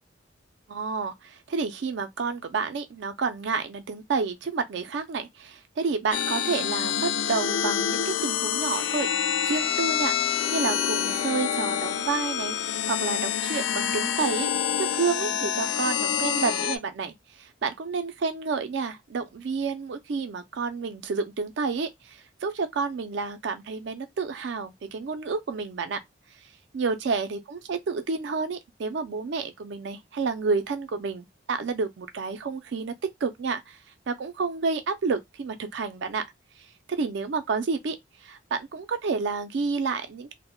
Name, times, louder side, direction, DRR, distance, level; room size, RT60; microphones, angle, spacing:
voice 1, 0.7-9.1 9.4-10.1 10.5-12.6 12.9-14.5 14.8-26.0 26.7-32.9 33.2-33.8 34.1-36.2 36.9-38.0 38.2-40.3, right 4 dB, 65° right, 0.4 m, -30 dB
sound 1, 6.1-16.8, left 9 dB, 75° left, 0.4 m, -27 dB
2.1 x 2.0 x 3.6 m
head